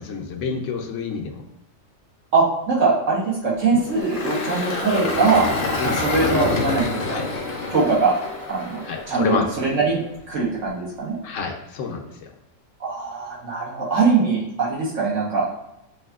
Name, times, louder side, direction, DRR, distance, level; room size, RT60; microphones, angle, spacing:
voice 1, 0.0-1.4 5.8-6.0 7.1-7.3 8.8-9.4 11.2-12.3, left 5 dB, 75° left, 3 dB, 0.9 m, -28 dB
voice 2, 2.3-5.4 5.8-7.2 7.7-8.1 8.5-8.8 9.1-10.0 10.3-11.2 12.8-15.5, right 4 dB, 70° right, -5 dB, 1.6 m, -22 dB
sound 1, 3.6-10.6, left 2 dB, 25° right, 0.7 m, -37 dB
Engine, 3.8-9.1, left 3 dB, 45° left, 0.5 m, -27 dB
6.2 x 2.7 x 2.3 m, 0.88 s
omnidirectional pair, 1.3 m